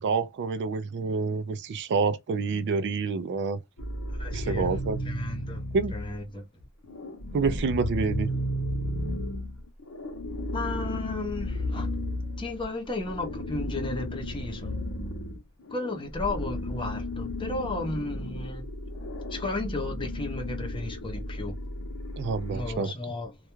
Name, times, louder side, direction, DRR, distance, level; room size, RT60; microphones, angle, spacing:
voice 1, 0.0-3.6 4.3-5.0 5.7-5.9 7.3-8.3 22.2-22.9, right 4 dB, 55° right, 0.3 m, -28 dB
sound 1, 3.8-6.2 6.6-22.8, left 1 dB, 70° left, 0.7 m, -34 dB
voice 2, 4.1-4.7 5.0-5.6 5.9-6.4 10.5-11.9 12.4-14.8 15.7-18.7 19.3-21.6 22.5-23.4, left 2 dB, 25° left, 0.6 m, -34 dB
2.3 x 2.2 x 2.9 m
head